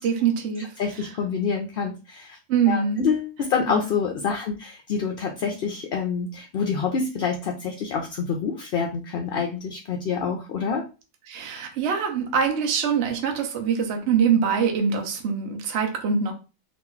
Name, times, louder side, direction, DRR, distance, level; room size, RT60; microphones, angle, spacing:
voice 1, 0.0-1.1 2.5-3.0 3.7-3.8 11.3-16.3, right 6 dB, 60° right, 3 dB, 0.9 m, -24 dB
voice 2, 0.6-2.4 2.7-10.8, left 6 dB, 65° left, 3 dB, 0.6 m, -27 dB
2.9 x 2.4 x 3.8 m, 0.31 s
omnidirectional pair, 1.4 m